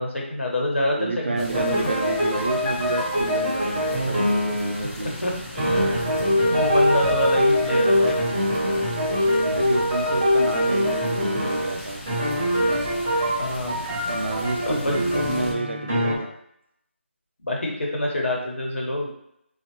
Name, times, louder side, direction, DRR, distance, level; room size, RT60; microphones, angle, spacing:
voice 1, 0.0-1.8 5.0-6.2 6.5-8.3 13.1-13.8 14.6-14.9 17.4-19.1, left 1 dB, 75° left, -2 dB, 1.4 m, -27 dB
voice 2, 1.0-5.1 9.4-12.0 13.9-16.3, right 2 dB, 60° right, 2 dB, 0.6 m, -29 dB
sound 1, 1.4-15.5, left 1 dB, 20° left, 0.7 m, -37 dB
sound 2, 1.5-4.8 5.6-11.8 12.1-16.1, equal, 15° right, 0.9 m, -23 dB
4.0 x 2.8 x 2.9 m, 0.76 s
figure-of-eight pair, 175°, 7 cm